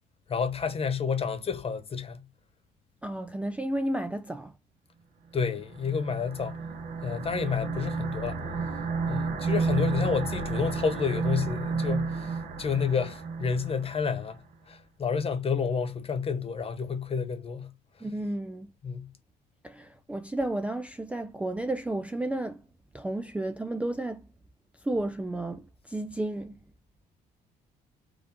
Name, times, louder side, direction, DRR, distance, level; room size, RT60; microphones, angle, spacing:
voice 1, 0.3-2.2 5.3-6.6 7.0-8.4 9.1-14.4 14.7-17.7 18.8-19.1, left 6 dB, 35° left, 1.1 m, -30 dB
voice 2, 3.0-4.5 18.0-18.7 19.6-22.6 22.9-24.2 24.8-26.5, right 1 dB, 5° right, 0.4 m, -32 dB
sound 1, 5.6-14.2, right 4 dB, 50° right, 1.2 m, -31 dB
4.8 x 2.6 x 3.6 m
cardioid pair, 110°, 17 cm